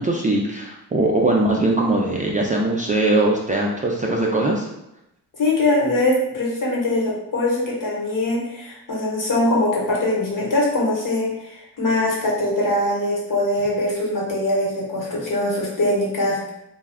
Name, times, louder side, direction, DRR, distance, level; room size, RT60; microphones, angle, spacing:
voice 1, 0.0-4.7, right 2 dB, 20° right, -2 dB, 0.3 m, -21 dB
voice 2, 5.4-16.5, left 1 dB, 50° left, -4 dB, 1.2 m, -22 dB
2.3 x 2.2 x 3.3 m, 0.87 s
cardioid pair, 60°, 39 cm